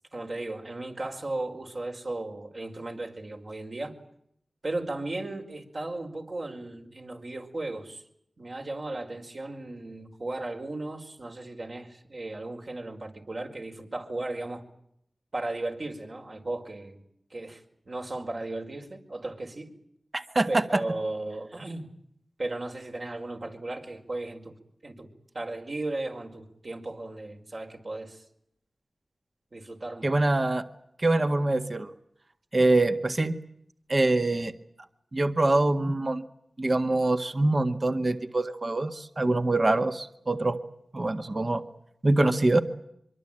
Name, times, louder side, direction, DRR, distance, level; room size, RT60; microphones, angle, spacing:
voice 1, 0.1-3.9 4.6-8.0 8.4-14.6 15.3-17.0 17.3-19.7 20.5-21.9 22.4-24.5 24.8-25.1 25.3-28.2 29.5-30.2, right 2 dB, 60° right, 2 dB, 5.1 m, -36 dB
voice 2, 20.1-20.8 30.0-30.6 31.0-31.9 32.5-33.3 33.9-34.5 35.1-36.2 36.6-40.6 40.9-41.6 42.0-42.6, right 2 dB, 45° right, 8 dB, 1.8 m, -24 dB
24.5 x 24.5 x 9.1 m, 0.73 s
wide cardioid pair, 60°, 0 cm